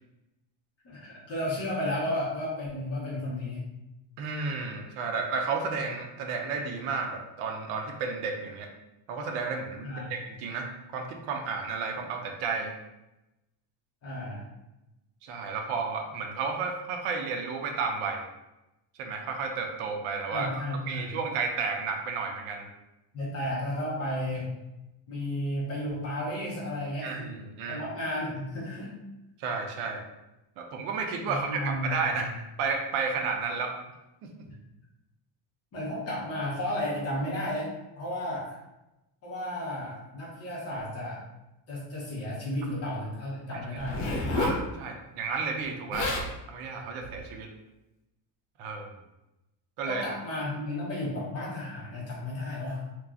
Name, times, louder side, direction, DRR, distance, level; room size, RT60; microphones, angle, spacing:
voice 1, 0.8-3.7 9.8-10.1 14.0-14.4 20.3-21.1 23.1-24.5 25.1-27.3 27.7-29.0 31.3-32.2 34.4-34.5 35.7-38.6 39.2-41.2 41.7-44.1 49.8-52.8, left 1 dB, 30° left, -6 dB, 0.7 m, -33 dB
voice 2, 4.2-8.7 9.1-12.7 15.2-18.3 19.0-20.5 20.9-22.7 27.0-27.8 29.4-30.0 30.6-33.8 43.5-43.6 44.4-46.1 46.5-47.5 48.6-48.9 49.8-50.0, right 4 dB, 85° right, 3 dB, 0.6 m, -32 dB
Zipper (clothing), 43.8-44.6 45.6-45.7 45.9-46.3 47.0-47.2, left 2 dB, 65° left, 0.7 m, -29 dB
2.9 x 2.3 x 2.4 m, 0.97 s
cardioid pair, 180°, 48 cm